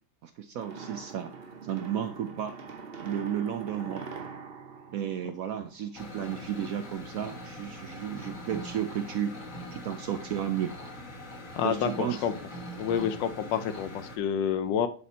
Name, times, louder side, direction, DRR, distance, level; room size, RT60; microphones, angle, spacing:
voice 1, 0.2-1.3 1.6-2.5 3.0-4.1 4.9-9.3 9.7-10.7 11.6-12.2, right 9 dB, 80° right, 8 dB, 0.7 m, -33 dB
sound 1, 0.6-5.9, right 5 dB, 50° right, 0.7 m, -43 dB
sound 2, 5.9-14.2, equal, 45° left, 1.7 m, -42 dB
voice 2, 11.5-12.3 12.8-14.9, left 8 dB, 75° left, 11 dB, 1.3 m, -28 dB
10.5 x 4.2 x 4.0 m, 0.42 s
omnidirectional pair, 2.1 m